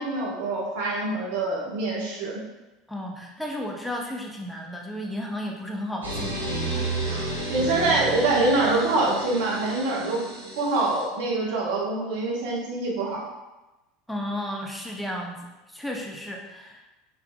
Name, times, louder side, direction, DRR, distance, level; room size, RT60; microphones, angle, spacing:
voice 1, 0.0-2.4 7.0-10.3 10.5-13.2, right 2 dB, 65° right, -3 dB, 1.2 m, -25 dB
voice 2, 2.9-6.4 14.1-16.8, left 1 dB, 5° left, 0 dB, 0.6 m, -33 dB
sound 1, 6.0-11.0, right 2 dB, 85° right, 0.9 m, -32 dB
5.6 x 3.5 x 2.3 m, 1.0 s
hypercardioid pair, 75°, 0 cm